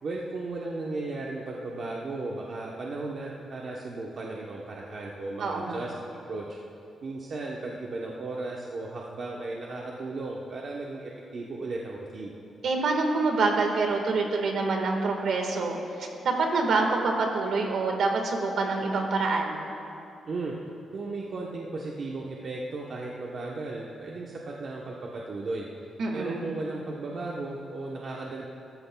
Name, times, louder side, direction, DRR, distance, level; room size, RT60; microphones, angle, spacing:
voice 1, 0.0-5.9 6.3-6.5 7.0-12.3 20.3-20.5 20.9-25.7 26.1-28.5, right 2 dB, 45° right, -3 dB, 0.9 m, -35 dB
voice 2, 5.4-5.8 12.6-19.6 26.0-26.5, right 3 dB, 60° right, 2 dB, 1.5 m, -26 dB
18.5 x 14.0 x 2.3 m, 2.7 s
wide cardioid pair, 170°, 0 cm